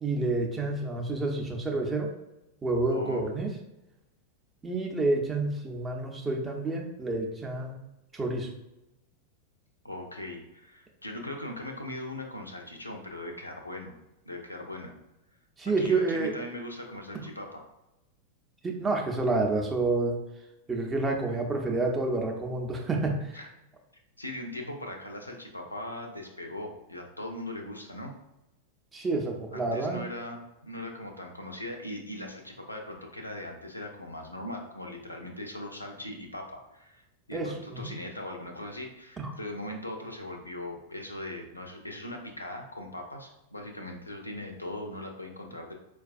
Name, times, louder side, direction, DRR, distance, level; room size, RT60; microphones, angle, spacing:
voice 1, 0.0-2.1 2.6-3.5 4.6-7.7 8.1-8.5 15.6-16.3 17.1-17.2 18.6-20.2 20.7-23.4 28.9-30.0 37.3-37.5 37.8-37.9 39.2-39.3, right 3 dB, 15° right, 1 dB, 0.5 m, -29 dB
voice 2, 2.9-3.2 9.8-13.9 14.3-14.9 15.8-17.6 23.3-23.5 24.2-28.1 29.5-37.0 37.3-45.7, left 1 dB, 85° left, 2 dB, 0.5 m, -39 dB
4.4 x 2.3 x 2.5 m, 0.93 s
figure-of-eight pair, 90°, 0 cm